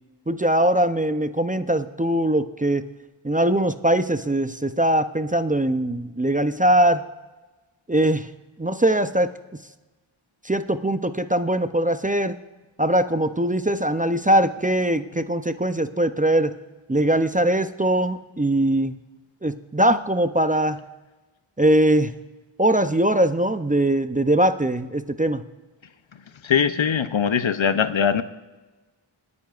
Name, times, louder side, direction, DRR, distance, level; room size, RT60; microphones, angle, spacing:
voice 1, 0.3-2.8 3.2-7.0 7.9-8.3 8.6-9.3 10.4-12.4 12.8-16.5 16.9-19.0 19.4-20.8 21.6-22.2 22.6-25.4, right 1 dB, 20° right, 10 dB, 0.5 m, -21 dB
voice 2, 26.4-28.2, left 7 dB, 70° left, 11 dB, 0.7 m, -21 dB
27.5 x 9.6 x 2.4 m, 1.2 s
wide cardioid pair, 50°, 48 cm